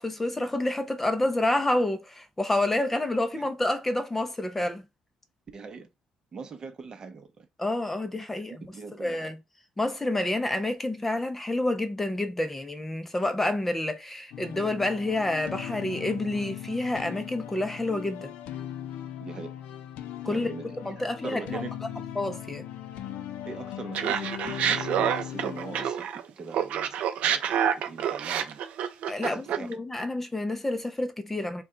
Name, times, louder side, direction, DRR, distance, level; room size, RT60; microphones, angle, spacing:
voice 1, 0.0-4.8 7.6-8.7 9.0-9.4 9.8-18.3 20.2-20.5 20.8-21.6 22.2-22.6 29.1-31.6, left 1 dB, 10° left, 0.5 m, -28 dB
voice 2, 5.5-5.9 6.3-7.5 8.5-9.3 19.2-19.5 20.3-22.0 23.5-26.1 26.4-28.6 29.2-29.8, right 4 dB, 30° right, 0.7 m, -41 dB
sound 1, 14.3-25.9, left 10 dB, 90° left, 0.5 m, -39 dB
Laughter, 23.9-26.2 26.5-29.7, right 9 dB, 65° right, 0.5 m, -27 dB
4.1 x 2.2 x 3.7 m
cardioid pair, 135°, 2 cm